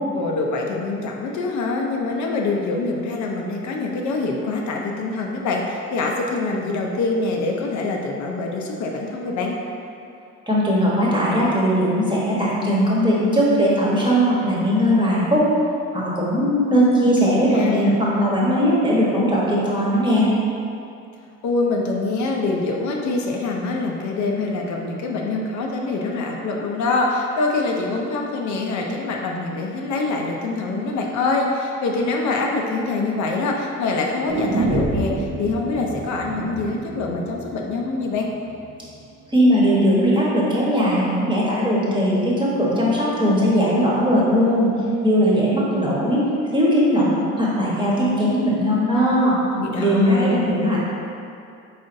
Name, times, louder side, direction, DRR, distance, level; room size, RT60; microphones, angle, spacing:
voice 1, 0.1-9.6 17.2-18.0 21.4-38.3 49.6-50.4, left 3 dB, 70° left, 0 dB, 0.5 m, -24 dB
voice 2, 10.5-15.5 15.9-20.3 39.3-44.7 45.0-46.2 46.5-49.4 49.8-50.8, equal, 15° right, -6 dB, 1.1 m, -19 dB
sound 1, 34.3-38.3 38.6-38.7, right 3 dB, 35° right, 0.4 m, -27 dB
4.2 x 3.9 x 2.6 m, 2.6 s
cardioid pair, 90°, 30 cm